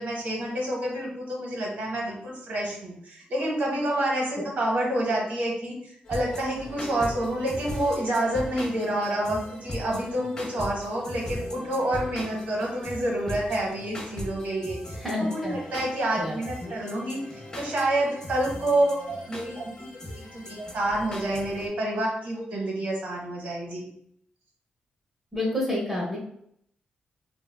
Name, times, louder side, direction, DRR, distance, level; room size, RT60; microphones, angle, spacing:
voice 1, 0.0-14.8 15.2-17.2 17.6-19.7 20.3-23.9, right 1 dB, 65° right, -2 dB, 0.8 m, -28 dB
sound 1, 6.0-21.7, left 1 dB, 25° left, 0.6 m, -39 dB
voice 2, 14.9-15.6 16.2-16.3 16.6-16.7 25.3-26.2, left 1 dB, 5° right, -4 dB, 0.8 m, -28 dB
3.2 x 2.2 x 2.2 m, 0.69 s
wide cardioid pair, 155°, 3 cm